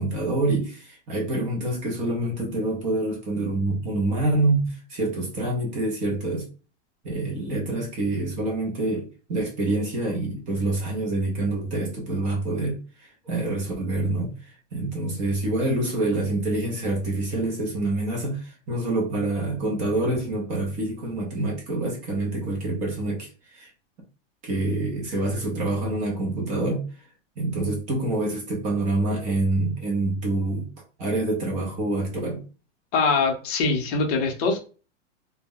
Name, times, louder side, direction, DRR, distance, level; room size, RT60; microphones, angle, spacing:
voice 1, 0.0-6.5 7.0-23.7 24.4-26.9 27.4-30.7 31.0-32.4, right 2 dB, 20° right, 0.5 m, -26 dB
voice 2, 32.9-34.6, left 4 dB, 35° left, 0.6 m, -23 dB
2.2 x 2.0 x 3.6 m
supercardioid pair, 155°, 37 cm